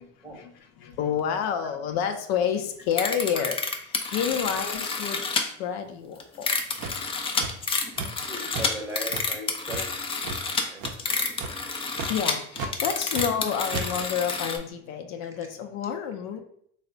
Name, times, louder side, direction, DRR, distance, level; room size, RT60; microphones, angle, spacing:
voice 1, 0.3-3.6 3.9-6.5 12.1-16.4, left 8 dB, 65° left, 6 dB, 0.5 m, -29 dB
sound 1, 2.9-5.4 6.2-14.6, left 4 dB, 15° left, 0.3 m, -29 dB
sound 2, 6.8-8.3 8.5-8.7 9.1-10.4 10.8-11.1 11.3-11.6 11.9-12.1 12.5-13.4 13.7-13.9, right 4 dB, 45° right, 0.5 m, -34 dB
voice 2, 8.3-9.9 10.7-11.3 13.7-13.8, equal, 10° right, -1 dB, 0.8 m, -38 dB
3.2 x 2.1 x 3.7 m, 0.66 s
supercardioid pair, 105°, 36 cm